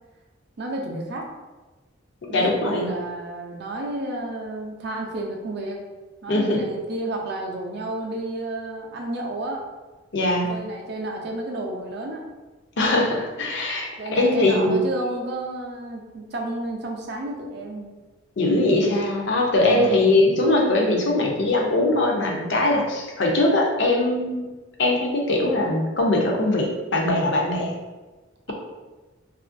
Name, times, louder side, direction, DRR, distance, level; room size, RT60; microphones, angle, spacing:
voice 1, 0.6-1.3 2.3-5.8 6.2-9.6 10.5-12.2 14.0-17.9 19.6-20.1, right 2 dB, 50° right, 0 dB, 0.4 m, -31 dB
voice 2, 2.2-2.9 6.3-6.7 10.1-10.6 12.8-14.8 18.4-24.4 24.8-27.7, left 2 dB, 55° left, 0 dB, 0.5 m, -21 dB
2.9 x 2.4 x 2.5 m, 1.2 s
head